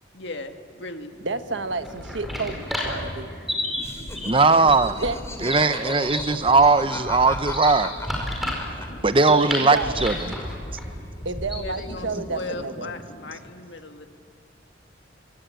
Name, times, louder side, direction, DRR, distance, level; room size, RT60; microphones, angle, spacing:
voice 1, 0.1-1.1 11.6-14.1, left 2 dB, 75° left, 5 dB, 1.9 m, -37 dB
sound 1, 1.1-13.4, equal, 45° left, 2.6 m, -46 dB
voice 2, 1.2-3.4 4.6-4.7 5.0-5.2 9.3-10.4 11.2-12.9, right 3 dB, 85° right, 9 dB, 1.3 m, -30 dB
sound 2, 1.7-11.9, left 1 dB, ahead, 4.9 m, -32 dB
Laughter, 3.8-9.6 9.8-10.6, left 2 dB, 15° left, 2.7 m, -36 dB
voice 3, 4.3-5.0 5.4-7.9 9.0-10.1, right 3 dB, 30° right, 12 dB, 0.8 m, -19 dB
25.5 x 24.5 x 9.0 m, 2.2 s
head